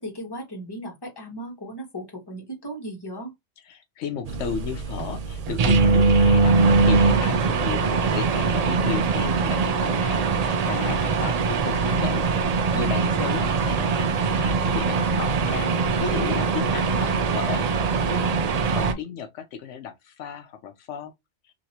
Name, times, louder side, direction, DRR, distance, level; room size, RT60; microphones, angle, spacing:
voice 1, 0.0-3.3, right 1 dB, 20° left, 1.2 m, -36 dB
voice 2, 3.7-12.3 12.5-18.3 18.7-21.1, left 6 dB, 85° left, 1.0 m, -34 dB
sound 1, 4.3-18.9, right 4 dB, 70° right, 0.3 m, -22 dB
2.9 x 2.9 x 2.8 m
omnidirectional pair, 1.2 m